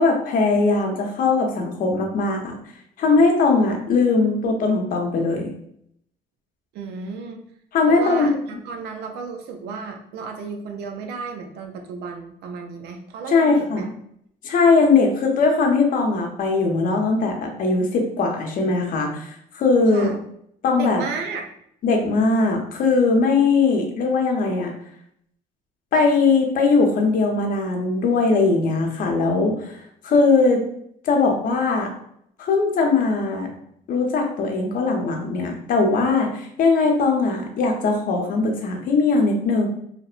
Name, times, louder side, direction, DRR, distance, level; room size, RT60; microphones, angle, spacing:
voice 1, 0.0-2.5 3.0-5.5 7.7-8.4 13.3-13.8 14.4-20.1 20.6-21.0 21.8-24.7 25.9-29.7 30.0-30.6 31.0-31.9 32.4-33.5 33.9-39.7, left 3 dB, 55° left, 2 dB, 0.6 m, -20 dB
voice 2, 6.7-7.4 7.9-13.9 19.9-20.2 20.8-21.5, right 5 dB, 75° right, 3 dB, 0.4 m, -33 dB
2.8 x 2.0 x 2.4 m, 0.70 s
cardioid pair, 110°, 17 cm